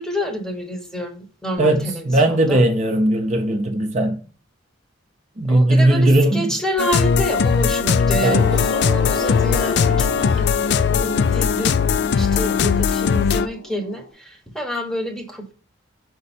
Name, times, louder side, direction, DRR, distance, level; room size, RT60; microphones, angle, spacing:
voice 1, 0.0-2.6 5.5-15.5, equal, 5° left, 1.0 m, -28 dB
voice 2, 1.6-4.2 5.4-6.5 8.2-8.4, right 1 dB, 35° right, 0.7 m, -18 dB
sound 1, 6.8-13.5, left 6 dB, 55° left, 0.3 m, -19 dB
sound 2, 8.2-14.1, left 2 dB, 80° left, 1.6 m, -32 dB
6.2 x 4.4 x 4.2 m
head